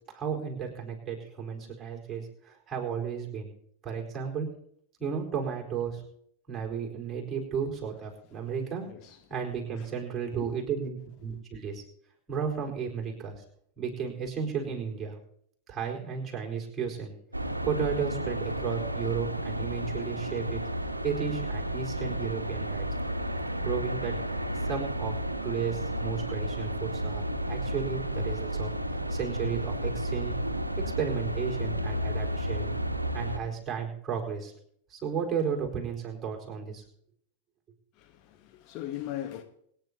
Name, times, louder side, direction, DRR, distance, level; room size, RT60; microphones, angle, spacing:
voice 1, 0.1-3.5 3.8-4.5 5.0-6.0 6.5-8.9 9.3-11.8 12.3-13.4 13.8-15.2 15.7-20.6 21.0-22.9 23.6-24.1 24.6-25.1 25.4-28.7 29.1-30.4 30.8-32.7 33.1-34.5 34.9-36.8, right 7 dB, 20° right, 4.3 m, -33 dB
voice 2, 8.8-9.9 10.3-10.5 11.3-11.4 37.9-39.4, left 12 dB, 40° left, 1.1 m, -41 dB
sound 1, 17.3-33.4, right 1 dB, 85° right, 1.1 m, -32 dB
25.0 x 9.9 x 2.9 m
figure-of-eight pair, 90°, 0 cm